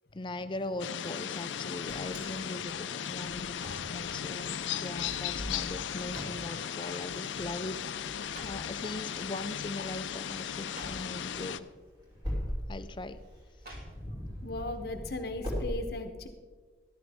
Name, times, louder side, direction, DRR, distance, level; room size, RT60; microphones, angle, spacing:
voice 1, 0.1-11.7 12.7-13.2, left 2 dB, 25° left, 11 dB, 0.4 m, -40 dB
sound 1, 0.8-11.6, left 9 dB, 85° left, 0.5 m, -37 dB
Wind, 1.5-15.7, equal, 20° right, 3.5 m, -42 dB
sound 2, 6.1-6.4 6.8-7.2 8.0-8.8 9.6-9.8 10.1-10.2 10.6-11.2 12.1-12.2 13.6-14.3 14.7-14.8, right 1 dB, 55° right, 2.6 m, -50 dB
voice 2, 14.4-16.3, left 2 dB, 55° left, 6 dB, 0.9 m, -37 dB
13.5 x 12.5 x 3.5 m, 1.5 s
head